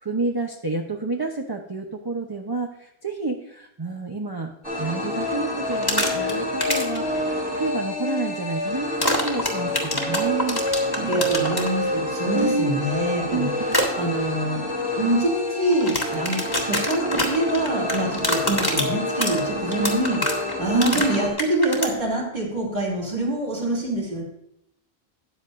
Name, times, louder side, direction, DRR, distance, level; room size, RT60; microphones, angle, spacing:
voice 1, 0.0-4.5 4.8-10.6 10.9-11.2 12.3-12.8 13.3-13.8 20.7-21.0, right 3 dB, 25° right, 2 dB, 0.8 m, -29 dB
sound 1, 4.6-21.3, left 1 dB, 10° right, 2.6 m, -28 dB
sound 2, 5.7-6.3 6.6-7.0 9.0-11.7 13.7-13.9 15.7-21.9, left 1 dB, 20° left, 1.7 m, -25 dB
voice 2, 11.0-13.5 13.9-14.6 15.0-20.2 20.6-24.2, right 1 dB, 45° right, -2 dB, 3.0 m, -25 dB
13.0 x 9.5 x 2.6 m, 0.77 s
omnidirectional pair, 1.1 m